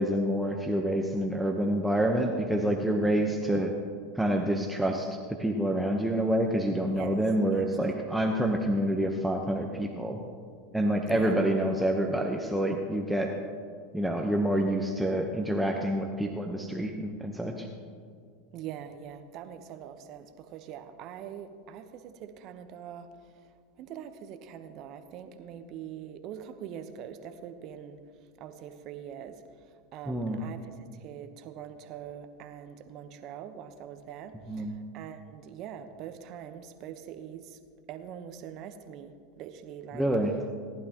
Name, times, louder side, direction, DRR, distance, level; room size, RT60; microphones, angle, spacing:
voice 1, 0.0-3.7 4.1-10.2 10.7-13.3 13.9-17.7 30.1-30.4 34.5-34.7 39.9-40.3, right 1 dB, 5° right, 1 dB, 1.0 m, -27 dB
voice 2, 3.0-3.4 6.9-7.2 7.5-7.7 11.1-11.6 18.5-23.5 23.8-28.0 28.4-37.6 37.9-40.1, right 9 dB, 50° right, 8 dB, 1.0 m, -43 dB
18.5 x 11.0 x 3.0 m, 2.1 s
hypercardioid pair, 90°, 0 cm